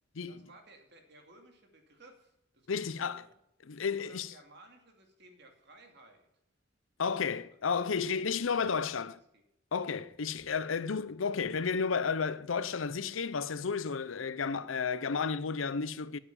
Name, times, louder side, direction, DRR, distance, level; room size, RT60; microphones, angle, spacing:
voice 1, 0.3-3.4 4.0-6.3 7.0-7.3 8.0-9.4, right 1 dB, 60° right, 2.5 m, -58 dB
voice 2, 2.7-3.2 3.6-4.3 7.0-9.1 9.7-16.2, left 5 dB, 90° left, 0.6 m, -32 dB
9.3 x 8.6 x 7.1 m
head